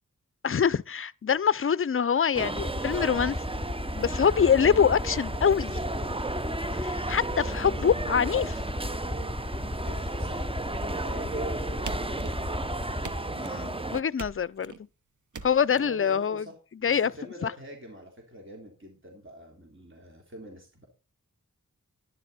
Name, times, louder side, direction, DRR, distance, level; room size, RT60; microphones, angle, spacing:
voice 1, 0.4-3.4 3.9-5.8 6.8-8.6 13.4-14.7 15.4-16.4 16.8-17.1 17.4-17.5, left 7 dB, 40° left, 0.5 m, -24 dB
sound 1, 2.3-14.0, right 2 dB, 15° right, 0.7 m, -33 dB
Aircraft, 2.6-13.2, left 2 dB, 10° left, 2.4 m, -36 dB
voice 2, 9.8-10.5 10.9-12.2 15.7-16.5 16.8-20.9, equal, 40° right, 3.5 m, -45 dB
sound 2, 11.9-12.6 13.0-13.7 14.2-14.8 15.3-15.8, right 5 dB, 65° right, 0.9 m, -42 dB
11.5 x 11.0 x 4.2 m
wide cardioid pair, 60°, 32 cm